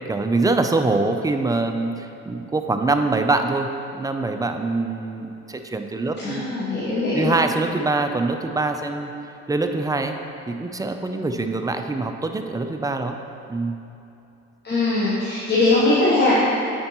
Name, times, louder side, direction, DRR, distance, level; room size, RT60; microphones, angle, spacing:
voice 1, 0.1-6.5 7.1-9.1 9.5-10.2 10.5-13.2 13.5-13.8, right 3 dB, 10° right, 6 dB, 0.4 m, -24 dB
voice 2, 6.2-7.3 14.6-16.4, left 2 dB, 35° left, -8 dB, 1.1 m, -20 dB
9.4 x 4.4 x 3.0 m, 2.8 s
cardioid pair, 90°, 30 cm